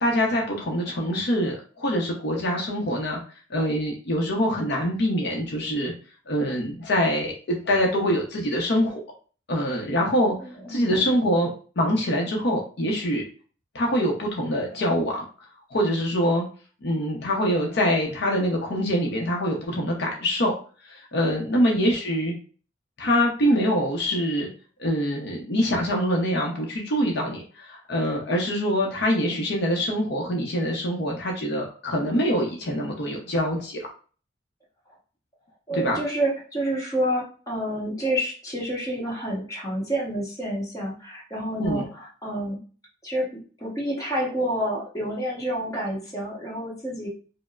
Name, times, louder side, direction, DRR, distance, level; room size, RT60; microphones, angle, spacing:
voice 1, 0.0-3.2 3.5-5.9 6.3-9.0 9.5-10.3 10.7-11.5 11.8-13.2 13.7-15.2 15.7-16.4 16.8-20.5 20.9-22.3 23.0-24.5 24.8-33.8 35.7-36.0 41.6-41.9, equal, 60° left, -1 dB, 0.7 m, -24 dB
voice 2, 10.4-10.9 21.2-21.6 35.7-42.6 43.0-47.1, right 1 dB, 20° left, -3 dB, 1.1 m, -29 dB
5.2 x 2.1 x 2.4 m, 0.39 s
head